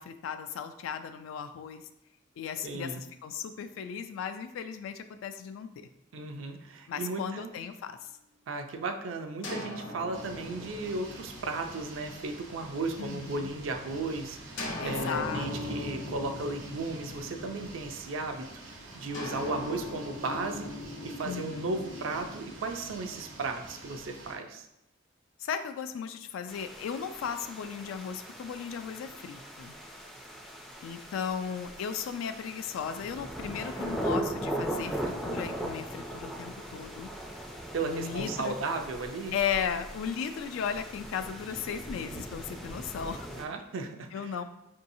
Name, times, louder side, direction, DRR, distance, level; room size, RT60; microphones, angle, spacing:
voice 1, 0.0-1.8 2.4-5.9 6.9-8.1 13.0-13.5 14.8-16.0 21.2-21.8 25.4-29.7 30.8-37.1 37.8-38.6 39.3-43.3 44.1-44.4, left 7 dB, 85° left, 10 dB, 0.3 m, -36 dB
voice 2, 2.6-3.0 6.1-7.5 8.5-20.8 21.0-24.7 37.7-39.4 43.4-44.3, right 3 dB, 75° right, 5 dB, 0.4 m, -35 dB
sound 1, 9.4-13.2 14.6-18.1 19.1-23.3, left 2 dB, 70° left, 0.7 m, -40 dB
sound 2, 10.1-24.3, right 2 dB, 90° right, 0.9 m, -47 dB
sound 3, 26.5-43.4, right 1 dB, ahead, 0.3 m, -39 dB
4.6 x 2.7 x 2.6 m, 0.84 s
head